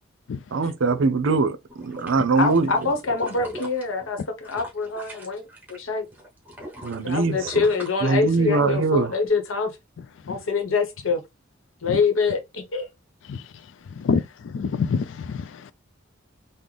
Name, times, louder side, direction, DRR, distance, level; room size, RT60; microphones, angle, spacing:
voice 1, 0.5-2.7 6.8-7.4 8.0-9.1, right 3 dB, 75° right, 0.5 m, -22 dB
sound 1, 1.7-5.8 6.1-8.6 9.1-9.2, equal, 10° right, 1.0 m, -40 dB
voice 2, 2.3-5.4 5.7-6.1 7.0-9.7 10.3-11.2 11.8-12.9, left 4 dB, 80° left, 0.8 m, -25 dB
voice 3, 13.9-15.7, left 5 dB, 65° left, 0.3 m, -27 dB
3.8 x 2.0 x 3.2 m
head